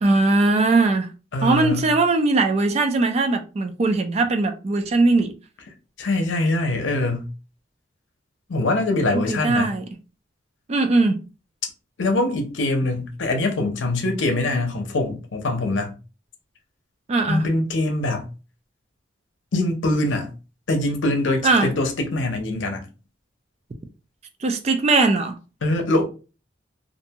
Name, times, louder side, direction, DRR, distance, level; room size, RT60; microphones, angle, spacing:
voice 1, 0.0-1.1 1.4-5.3 9.1-9.8 10.7-11.2 17.1-17.4 21.4-21.7 24.4-25.3, right 3 dB, 35° right, 0.4 m, -20 dB
voice 2, 1.3-1.9 6.0-7.3 8.5-9.7 12.0-15.9 17.3-18.3 19.5-20.3 20.7-22.9 25.6-26.1, left 2 dB, 70° left, 0.7 m, -23 dB
2.5 x 2.2 x 2.8 m
head